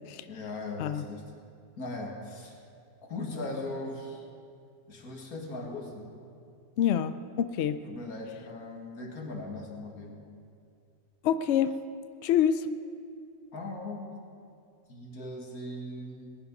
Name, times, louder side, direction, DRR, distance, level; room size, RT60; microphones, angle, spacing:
voice 1, 0.3-1.2 1.8-2.6 3.1-4.2 4.9-6.2 7.8-10.2 13.5-14.2 14.9-16.4, left 2 dB, 85° left, 1 dB, 2.3 m, -39 dB
voice 2, 6.8-7.8 11.2-11.8 12.2-12.7, left 9 dB, 65° left, 12 dB, 0.7 m, -26 dB
19.5 x 10.5 x 5.4 m, 2.4 s
omnidirectional pair, 1.5 m